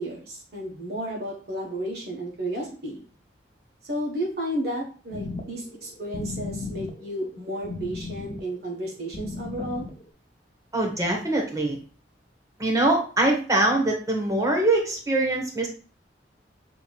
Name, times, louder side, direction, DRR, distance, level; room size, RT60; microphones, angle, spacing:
voice 1, 0.0-3.0 3.8-9.9, right 1 dB, 60° right, -2 dB, 1.3 m, -32 dB
sound 1, 5.1-10.1, left 3 dB, 35° left, 0.6 m, -36 dB
voice 2, 10.7-11.8 12.6-15.7, right 2 dB, 20° right, 1 dB, 1.0 m, -23 dB
6.9 x 3.0 x 2.4 m, 0.38 s
head